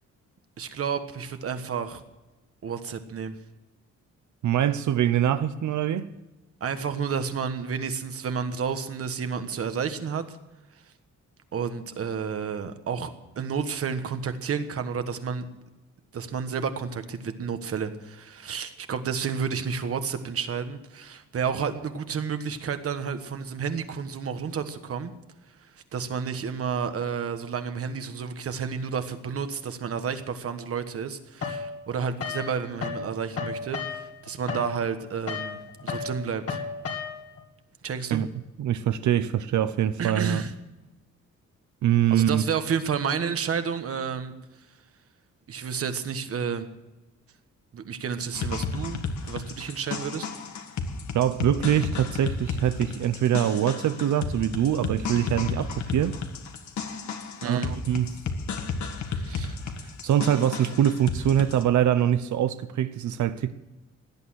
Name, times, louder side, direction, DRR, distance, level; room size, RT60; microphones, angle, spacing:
voice 1, 0.6-2.0 2.6-3.3 6.6-10.4 11.5-13.1 13.4-15.4 16.1-25.1 25.9-36.6 37.8-38.2 40.0-40.5 42.1-44.3 45.5-46.7 47.7-50.3 57.4-57.8 59.1-59.6, right 6 dB, 55° right, 1.3 m, -31 dB
voice 2, 4.4-6.1 38.1-38.3 38.6-40.4 41.8-42.4 51.1-56.2 57.4-58.2 60.0-63.6, right 10 dB, 80° right, 0.8 m, -24 dB
sound 1, 31.4-33.1 33.3-37.4, left 5 dB, 55° left, 2.4 m, -33 dB
sound 2, 48.3-61.6, left 4 dB, 75° left, 1.7 m, -33 dB
17.5 x 11.0 x 6.4 m
wide cardioid pair, 175°, 29 cm